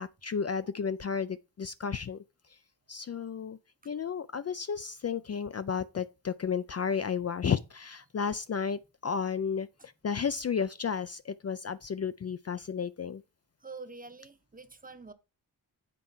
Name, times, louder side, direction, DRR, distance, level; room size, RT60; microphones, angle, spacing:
voice 1, 0.0-2.2 2.9-3.6 3.9-13.2, left 6 dB, 40° left, 0.4 m, -33 dB
voice 2, 13.6-15.1, right 4 dB, 20° right, 0.8 m, -46 dB
7.6 x 4.5 x 5.5 m
wide cardioid pair, 80°, 38 cm